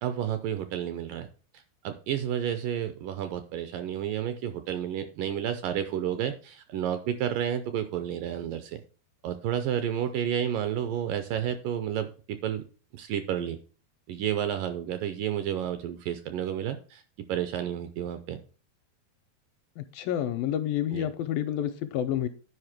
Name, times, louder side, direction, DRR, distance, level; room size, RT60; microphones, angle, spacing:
voice 1, 0.0-1.3 1.8-8.8 9.2-12.1 12.4-12.6 12.9-13.6 14.1-17.0 17.3-18.4 20.9-21.1, right 10 dB, 80° right, 9 dB, 2.1 m, -31 dB
voice 2, 19.8-22.3, left 11 dB, 80° left, 10 dB, 2.2 m, -29 dB
9.9 x 5.1 x 5.9 m, 0.37 s
omnidirectional pair, 4.4 m